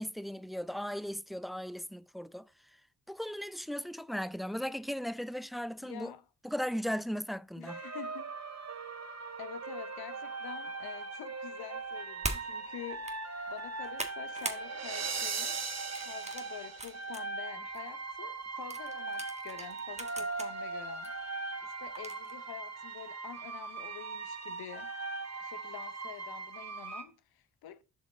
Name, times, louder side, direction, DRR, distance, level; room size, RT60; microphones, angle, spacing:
voice 1, 0.0-2.5 3.1-6.1 6.4-7.8, equal, ahead, 0.3 m, -37 dB
voice 2, 5.8-6.2 7.6-8.3 9.4-13.2 13.5-15.8 16.0-21.1 21.6-24.9 25.4-27.8, left 11 dB, 70° left, 0.8 m, -47 dB
sound 1, 7.7-27.0, right 4 dB, 40° right, 1.5 m, -39 dB
sound 2, 12.2-12.5 12.9-13.2 13.6-14.6 15.0-15.3 15.9-17.2 17.7-17.8 18.7-20.5 21.0-21.1 21.9-22.3, right 2 dB, 15° right, 1.6 m, -40 dB
7.8 x 5.2 x 3.9 m
supercardioid pair, 50°, 39 cm